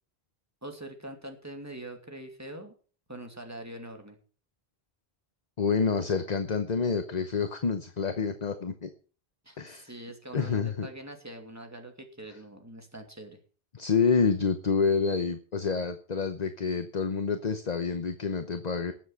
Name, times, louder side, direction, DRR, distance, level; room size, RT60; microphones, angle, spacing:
voice 1, 0.6-2.7 3.1-4.2 9.4-13.4, right 1 dB, 15° right, 4 dB, 2.5 m, -43 dB
voice 2, 5.6-8.9 9.6-9.9 10.3-10.9 13.7-18.9, left 5 dB, 45° left, 9 dB, 1.0 m, -28 dB
19.0 x 7.5 x 5.8 m, 0.40 s
omnidirectional pair, 1.0 m